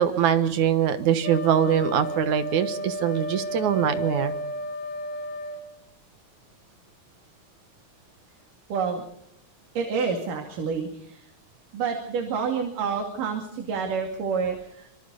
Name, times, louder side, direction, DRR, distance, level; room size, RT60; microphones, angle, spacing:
voice 1, 0.0-4.3, right 9 dB, 70° right, 10 dB, 2.7 m, -23 dB
Wind instrument woodwind instrument, 1.2-5.7, left 1 dB, 50° left, 2.8 m, -32 dB
voice 2, 8.7-9.0 9.8-11.3 11.7-14.9, right 5 dB, 85° right, 3 dB, 4.0 m, -28 dB
26.0 x 25.0 x 4.0 m, 0.76 s
omnidirectional pair, 3.7 m